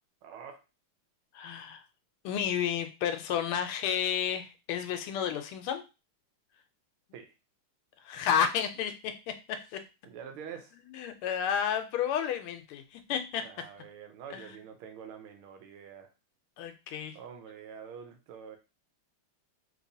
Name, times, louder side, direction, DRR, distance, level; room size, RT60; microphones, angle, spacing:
voice 1, 0.2-0.6 7.1-7.3 10.0-10.7 13.4-16.1 17.1-18.6, right 7 dB, 80° right, 6 dB, 1.5 m, -46 dB
voice 2, 1.3-1.8 2.2-5.8 8.0-9.8 10.9-13.5 14.3-14.5 16.6-17.2, left 8 dB, 90° left, 8 dB, 1.5 m, -31 dB
3.5 x 3.0 x 2.6 m, 0.29 s
omnidirectional pair, 2.3 m